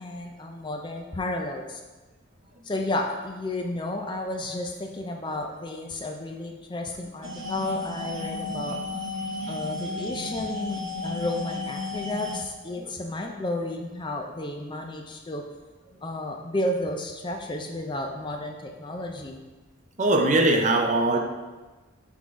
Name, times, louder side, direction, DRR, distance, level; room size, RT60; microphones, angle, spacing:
voice 1, 0.0-1.8 2.6-8.8 9.5-15.4 16.0-19.4, left 1 dB, 20° left, 2 dB, 0.4 m, -32 dB
sound 1, 7.2-12.4, left 2 dB, 65° right, 0.8 m, -33 dB
voice 2, 20.0-21.2, right 2 dB, 35° right, 3 dB, 0.5 m, -21 dB
6.1 x 3.7 x 4.6 m, 1.2 s
head